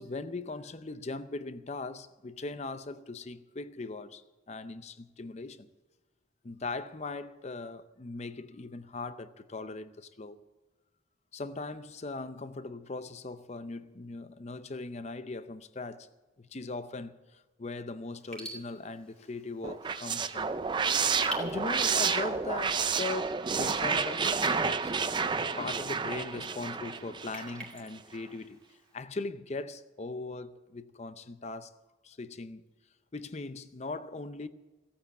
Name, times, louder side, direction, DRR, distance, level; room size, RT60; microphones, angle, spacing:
voice 1, 0.0-5.7 6.4-10.4 11.3-16.1 16.4-20.5 21.0-24.9 25.4-28.6 28.9-31.7 32.0-32.6 33.1-34.5, left 3 dB, 35° left, 0.6 m, -39 dB
Raindrop / Drip, 18.2-29.0, equal, 5° left, 2.3 m, -49 dB
sound 1, 19.6-27.7, right 5 dB, 25° right, 0.5 m, -30 dB
15.5 x 8.7 x 8.3 m
head